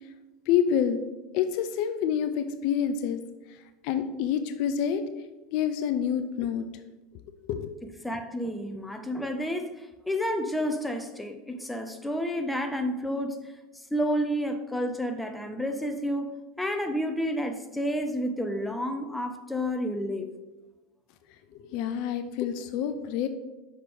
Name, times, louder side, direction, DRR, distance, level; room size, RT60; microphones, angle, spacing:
voice 1, 0.5-1.1 1.3-3.2 3.8-5.0 5.5-6.6 7.5-7.7 21.6-23.3, left 8 dB, 55° left, 9 dB, 0.4 m, -27 dB
voice 2, 8.0-13.4 13.9-20.3, equal, 5° left, 6 dB, 0.6 m, -30 dB
5.7 x 5.0 x 3.5 m, 1.1 s
figure-of-eight pair, 80°, 0 cm